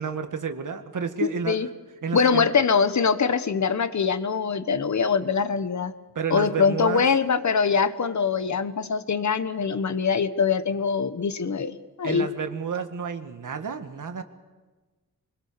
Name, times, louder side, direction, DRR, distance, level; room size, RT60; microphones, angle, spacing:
voice 1, 0.0-1.7 2.0-2.5 6.2-7.1 12.0-14.2, right 6 dB, 60° right, 7 dB, 1.9 m, -30 dB
voice 2, 2.1-5.9 6.3-12.3, left 5 dB, 55° left, 12 dB, 1.2 m, -23 dB
24.5 x 22.0 x 6.9 m, 1.2 s
wide cardioid pair, 110°, 34 cm